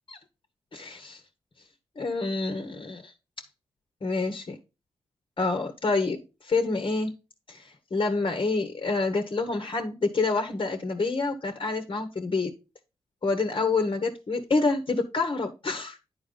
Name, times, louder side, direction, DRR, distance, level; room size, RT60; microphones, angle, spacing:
voice 1, 0.7-1.2 2.0-3.1 4.0-4.6 5.4-7.1 7.5-12.6 13.2-16.0, left 3 dB, 45° left, 1.5 m, -27 dB
10.0 x 4.4 x 4.0 m
supercardioid pair, 40°, 12 cm